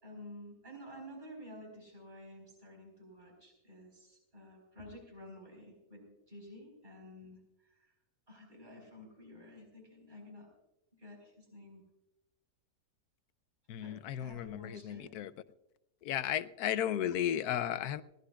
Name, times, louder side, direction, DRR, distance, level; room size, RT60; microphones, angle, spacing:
voice 1, 0.0-7.9 8.3-10.5 10.9-11.8 13.8-15.1, left 1 dB, 25° right, 1 dB, 4.9 m, -51 dB
voice 2, 13.7-15.3 16.0-18.0, left 10 dB, 70° left, 14 dB, 1.1 m, -34 dB
21.0 x 18.0 x 2.3 m, 0.93 s
omnidirectional pair, 1.8 m